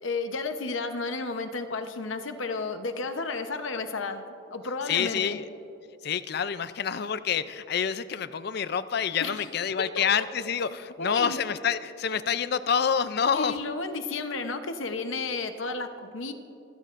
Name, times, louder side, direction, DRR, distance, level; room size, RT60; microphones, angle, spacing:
voice 1, 0.0-5.4 9.2-9.4 10.0-10.1 11.0-11.4 13.3-16.3, left 3 dB, 85° left, 7 dB, 0.9 m, -32 dB
voice 2, 4.9-5.4 6.0-13.6, left 7 dB, 55° left, 14 dB, 0.4 m, -27 dB
27.0 x 16.0 x 2.6 m, 2.9 s
head